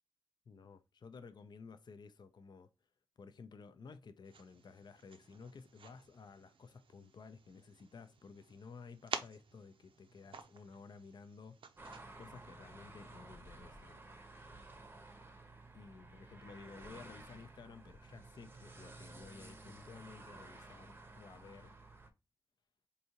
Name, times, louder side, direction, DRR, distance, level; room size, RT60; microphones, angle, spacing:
voice 1, 0.5-2.7 3.2-14.0 15.7-21.8, left 5 dB, 55° left, 0.4 m, -54 dB
sound 1, 4.2-12.0, right 5 dB, 75° right, 0.5 m, -50 dB
sound 2, 11.8-22.1, right 2 dB, 25° right, 0.7 m, -54 dB
4.6 x 2.6 x 2.8 m
wide cardioid pair, 145°, 9 cm